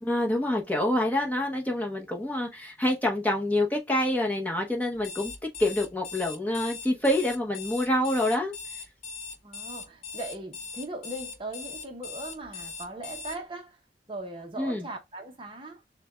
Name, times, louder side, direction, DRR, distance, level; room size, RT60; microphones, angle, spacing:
voice 1, 0.0-5.3 5.6-8.5 14.6-14.9, left 1 dB, 10° left, 0.8 m, -27 dB
Alarm, 4.9-13.4, left 5 dB, 40° left, 0.6 m, -40 dB
voice 2, 9.4-13.8 14.1-15.9, right 2 dB, 30° right, 0.7 m, -39 dB
6.6 x 2.2 x 2.3 m
head